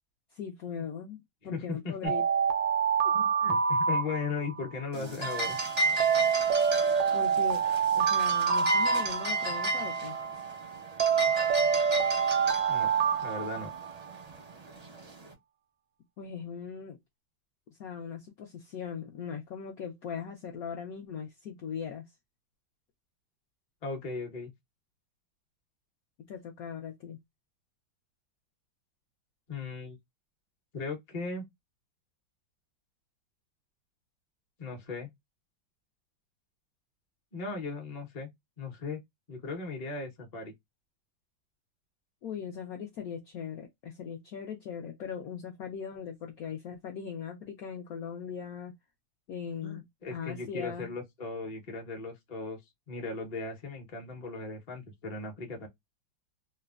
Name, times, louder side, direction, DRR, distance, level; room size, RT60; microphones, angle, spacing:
voice 1, 0.3-2.2 7.1-10.2 16.2-17.0 17.7-22.0 26.3-27.2 42.2-48.7 49.3-49.8 50.1-50.9, left 7 dB, 75° left, 0.8 m, -39 dB
voice 2, 1.4-2.1 3.0-5.6 12.7-12.9 13.2-13.7 23.8-24.5 29.5-30.0 30.7-31.5 34.6-35.1 37.3-38.3 38.6-39.0 39.3-40.5 49.6-52.6 52.9-55.7, left 4 dB, 40° left, 0.5 m, -37 dB
Alarm, 2.0-4.7 6.0-9.7 11.0-14.2, right 6 dB, 75° right, 0.8 m, -27 dB
sound 1, 4.9-15.3, right 3 dB, 50° right, 0.4 m, -33 dB
3.1 x 2.1 x 2.3 m
omnidirectional pair, 2.1 m